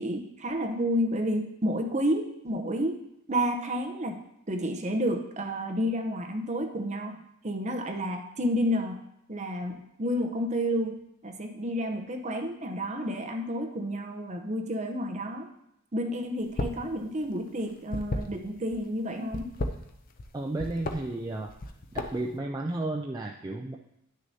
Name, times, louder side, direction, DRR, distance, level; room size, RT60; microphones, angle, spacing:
voice 1, 0.0-3.0 3.3-4.2 4.5-7.2 7.4-9.0 9.3-15.5 15.9-19.5, equal, 30° right, 4 dB, 0.7 m, -30 dB
sound 1, 16.4-16.9 17.1-18.8 19.2-20.3 20.6-21.0 21.5-22.3, left 2 dB, 40° left, 0.6 m, -33 dB
voice 2, 20.3-21.5 21.9-23.8, right 2 dB, 15° right, 1 dB, 0.3 m, -33 dB
10.5 x 6.3 x 2.7 m, 0.79 s
head